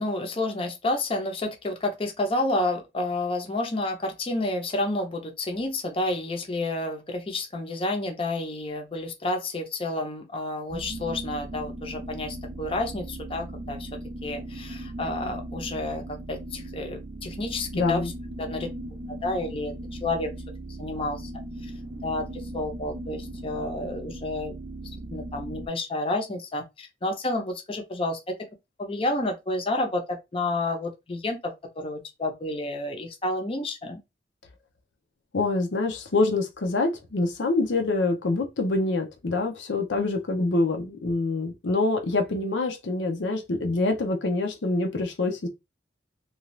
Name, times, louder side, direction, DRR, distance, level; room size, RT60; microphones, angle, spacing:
voice 1, 0.0-13.9 14.2-16.0 16.3-18.1 18.4-18.7 19.2-20.3 20.8-21.3 21.6-21.7 22.0-24.6 25.1-28.2 28.8-34.0, left 2 dB, 30° left, 0.6 m, -30 dB
sound 1, 10.7-25.7, right 1 dB, 45° right, 0.4 m, -38 dB
voice 2, 17.7-18.1 35.3-45.5, left 2 dB, 90° left, 0.6 m, -25 dB
2.6 x 2.3 x 3.1 m
head